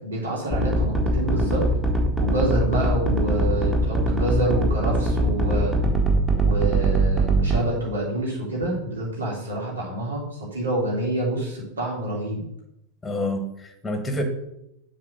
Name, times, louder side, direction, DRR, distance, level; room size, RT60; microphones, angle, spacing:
voice 1, 0.0-1.6 2.2-5.7 6.4-12.4, right 1 dB, 70° right, -3 dB, 3.1 m, -27 dB
sound 1, 0.5-7.6, right 2 dB, 10° right, 1.6 m, -21 dB
voice 2, 13.0-14.2, left 1 dB, 10° left, 6 dB, 1.5 m, -28 dB
7.6 x 4.2 x 6.5 m, 0.81 s
figure-of-eight pair, 90°, 0 cm